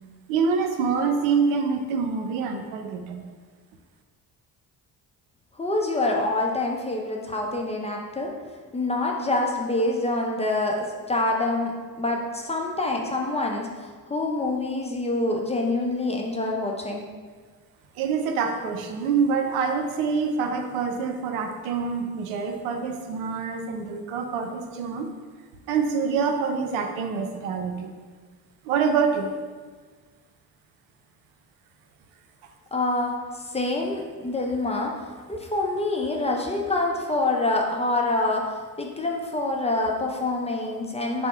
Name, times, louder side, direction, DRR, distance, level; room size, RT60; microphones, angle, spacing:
voice 1, 0.3-3.2 18.0-25.1 25.7-27.9 28.6-29.4, right 5 dB, 80° right, 5 dB, 0.6 m, -26 dB
voice 2, 5.6-17.1 32.7-35.0 35.3-41.3, left 2 dB, 15° left, 0 dB, 0.6 m, -26 dB
4.2 x 2.0 x 4.5 m, 1.5 s
hypercardioid pair, 50°, 47 cm